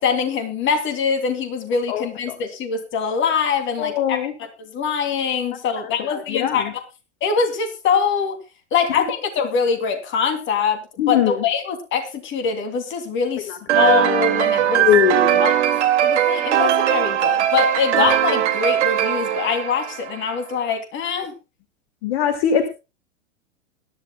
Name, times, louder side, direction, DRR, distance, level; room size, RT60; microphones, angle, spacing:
voice 1, 0.0-4.3 4.6-6.7 7.2-8.4 8.7-14.9 15.4-21.3, left 6 dB, 30° left, 6 dB, 3.1 m, -23 dB
voice 2, 3.8-4.3 6.1-6.7 11.0-11.3 14.8-15.4 22.0-22.7, left 9 dB, 50° left, 8 dB, 2.0 m, -20 dB
sound 1, 13.7-20.3, right 11 dB, 65° right, 2.5 m, -19 dB
22.0 x 11.0 x 2.3 m, 0.29 s
figure-of-eight pair, 105°, 38 cm